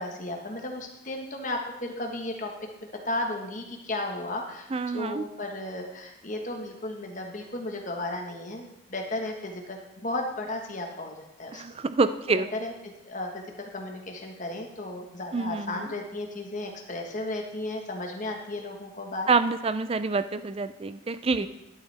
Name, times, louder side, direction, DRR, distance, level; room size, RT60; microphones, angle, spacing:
voice 1, 0.0-2.5 3.0-11.6 12.3-12.7 13.0-19.3 21.4-21.5, left 2 dB, 40° left, 2 dB, 1.4 m, -34 dB
voice 2, 4.7-5.2 11.5-12.5 15.3-15.8 19.3-21.5, right 4 dB, 30° right, 12 dB, 0.4 m, -26 dB
11.5 x 9.3 x 3.4 m, 0.92 s
head